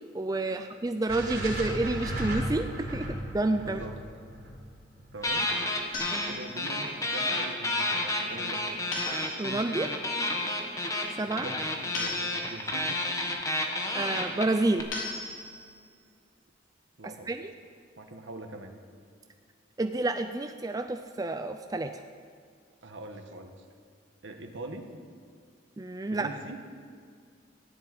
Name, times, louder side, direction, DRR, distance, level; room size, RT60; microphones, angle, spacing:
voice 1, 0.1-3.8 6.1-6.2 9.4-9.9 11.2-11.5 13.4-13.5 13.9-14.9 17.3-17.4 19.8-22.0 25.8-26.3, right 2 dB, 20° right, 7 dB, 0.4 m, -29 dB
sound 1, 1.1-5.3, equal, 50° right, 3.8 m, -35 dB
voice 2, 3.6-4.0 5.1-5.5 6.1-8.6 11.1-13.0 17.0-17.3 18.0-18.7 22.8-23.5 24.2-24.9 26.1-26.6, right 2 dB, 80° right, 4 dB, 1.3 m, -43 dB
sound 2, 5.2-6.3 6.6-14.8, left 1 dB, 15° left, 1.4 m, -30 dB
sound 3, 5.9-6.9 8.9-9.8 11.9-12.8 14.9-15.8, left 3 dB, 85° left, 4.0 m, -38 dB
14.5 x 7.5 x 9.4 m, 2.1 s
head